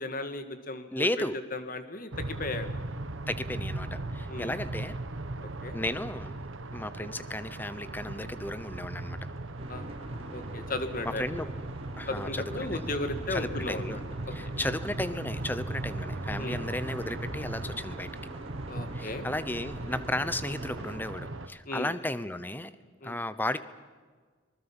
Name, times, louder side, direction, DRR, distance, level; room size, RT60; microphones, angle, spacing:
voice 1, 0.0-1.1 1.5-2.8 4.3-4.6 5.6-5.7 9.7-11.2 12.1-14.0 14.3-14.4 14.6-14.7 16.4-16.7 18.7-19.3 21.7-21.9 23.0-23.2, left 2 dB, 45° left, 9 dB, 1.8 m, -36 dB
voice 2, 0.9-1.4 3.3-4.9 5.7-6.3 6.7-9.2 11.0-11.5 12.0-12.9 13.3-14.0 14.3-18.1 18.9-22.7 23.0-23.6, left 1 dB, 10° left, 13 dB, 0.8 m, -34 dB
sound 1, 2.1-21.5, right 2 dB, 85° right, 1.3 m, -38 dB
sound 2, 9.6-21.0, right 1 dB, 30° right, 3.4 m, -46 dB
25.0 x 20.0 x 7.3 m, 1.5 s
head